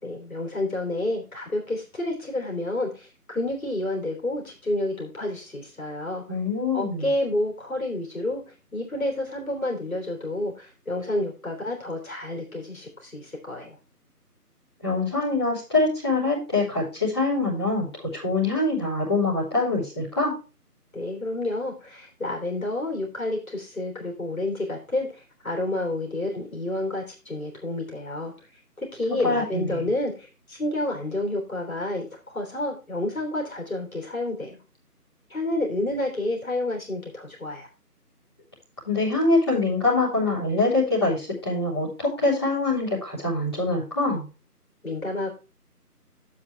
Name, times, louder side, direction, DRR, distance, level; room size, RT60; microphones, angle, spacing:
voice 1, 0.0-6.2 6.7-8.4 8.7-13.8 20.9-28.3 28.8-34.6 35.3-37.7 44.8-45.3, left 1 dB, 60° left, 1 dB, 3.3 m, -29 dB
voice 2, 6.3-7.1 14.8-17.9 18.1-20.3 29.2-29.8 38.8-44.3, left 2 dB, 15° left, -12 dB, 3.6 m, -24 dB
10.5 x 7.5 x 3.3 m, 0.31 s
figure-of-eight pair, 175°, 48 cm